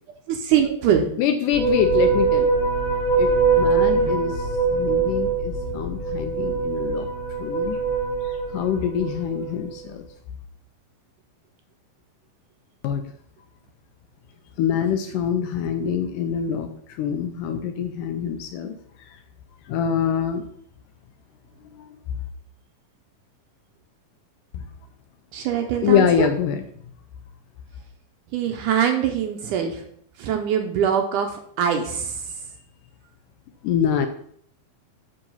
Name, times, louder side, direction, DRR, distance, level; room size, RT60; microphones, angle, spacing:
voice 1, 0.3-1.1 3.9-4.1 25.3-26.3 28.3-29.8 30.2-32.2, right 8 dB, 75° right, 5 dB, 2.0 m, -23 dB
voice 2, 1.2-2.5 3.1-7.1 7.4-7.8 8.2-10.1 12.8-13.0 14.6-19.2 19.7-20.5 21.7-21.9 24.5-24.7 25.8-26.6 33.6-34.1, left 8 dB, 80° left, 7 dB, 2.0 m, -25 dB
sound 1, 1.5-9.6, right 4 dB, 40° left, 2.6 m, -22 dB
7.8 x 6.2 x 5.5 m, 0.65 s
omnidirectional pair, 4.2 m